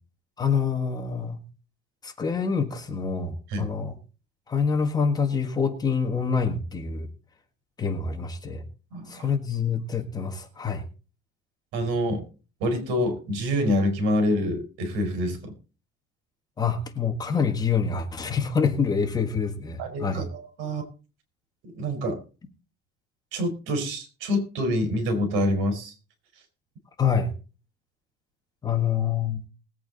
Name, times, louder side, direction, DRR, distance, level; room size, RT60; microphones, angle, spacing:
voice 1, 0.4-1.4 2.0-3.9 4.5-7.1 7.8-8.6 9.1-10.9 16.6-20.3 27.0-27.3 28.6-29.4, left 6 dB, 20° left, 6 dB, 1.6 m, -26 dB
voice 2, 8.9-9.3 11.7-12.2 12.6-15.5 19.8-20.8 21.7-22.2 23.3-25.9, equal, 75° right, 7 dB, 4.7 m, -26 dB
20.0 x 8.5 x 4.0 m, 0.35 s
cardioid pair, 160°, 20 cm